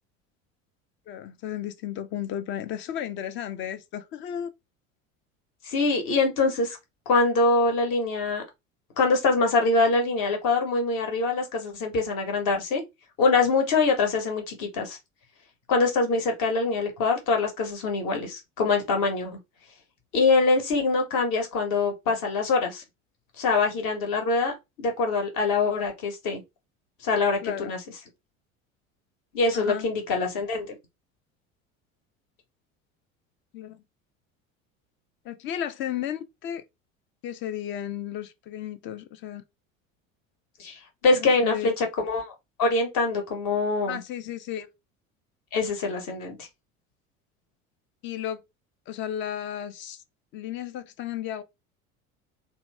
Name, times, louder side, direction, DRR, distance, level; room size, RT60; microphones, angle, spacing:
voice 1, 1.1-4.5 27.4-27.7 29.5-29.9 33.5-33.8 35.2-36.6 37.2-39.4 41.1-41.7 43.9-44.7 48.0-48.4 48.9-50.0 50.3-51.4, left 10 dB, 30° left, 0.4 m, -34 dB
voice 2, 5.6-6.8 7.1-8.4 9.0-12.8 13.2-15.0 15.7-19.4 20.1-22.8 23.4-26.4 27.0-27.8 29.3-30.7 40.6-42.3 42.6-44.0 45.5-46.5, left 3 dB, 45° left, 1.2 m, -24 dB
2.8 x 2.1 x 3.3 m
figure-of-eight pair, 70°, 41 cm